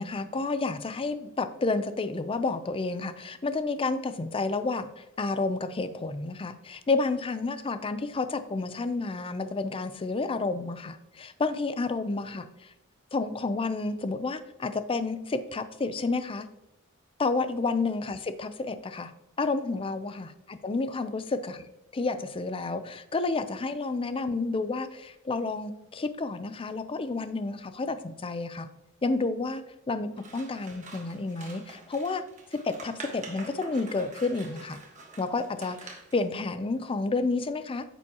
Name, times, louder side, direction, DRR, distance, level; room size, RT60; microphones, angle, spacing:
voice 1, 0.0-12.5 13.1-16.5 17.2-19.1 19.4-21.6 21.9-28.7 29.0-29.6 29.9-32.2 32.5-34.8 35.2-37.8, left 3 dB, 25° left, 11 dB, 0.5 m, -30 dB
Scissors, 30.1-36.2, right 3 dB, 35° right, 1.3 m, -47 dB
9.2 x 7.0 x 2.8 m, 0.88 s
head